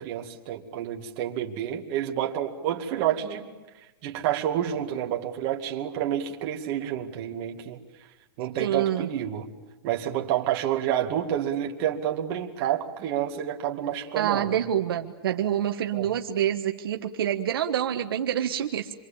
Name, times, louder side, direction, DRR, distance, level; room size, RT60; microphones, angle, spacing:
voice 1, 0.0-3.5 4.0-7.8 8.4-9.5 9.8-14.6 15.9-16.1, right 10 dB, 35° right, 2 dB, 2.3 m, -29 dB
voice 2, 8.6-9.1 14.1-18.9, right 10 dB, 70° right, 5 dB, 1.5 m, -27 dB
27.5 x 23.0 x 8.8 m, 1.1 s
supercardioid pair, 170°, 13 cm